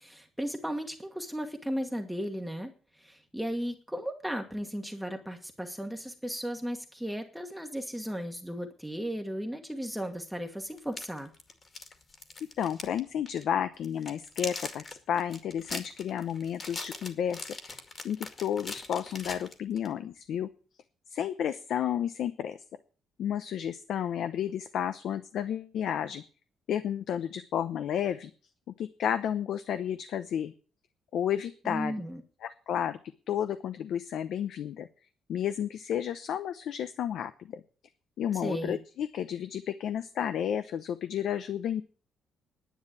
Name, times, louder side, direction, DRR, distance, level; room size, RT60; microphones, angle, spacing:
voice 1, 0.0-11.3 31.6-32.2 38.3-38.8, equal, ahead, 3 dB, 1.4 m, -35 dB
sound 1, 9.9-10.0 10.8-13.0 13.3-13.4 13.8-19.9, left 3 dB, 25° left, 2.1 m, -41 dB
voice 2, 12.6-20.5 21.1-22.6 23.2-26.2 26.7-28.3 28.7-30.5 31.1-32.0 32.4-33.0 33.3-34.9 35.3-37.6 38.2-41.8, left 9 dB, 60° left, 11 dB, 0.8 m, -32 dB
10.5 x 9.7 x 8.3 m, 0.39 s
cardioid pair, 160°, 0 cm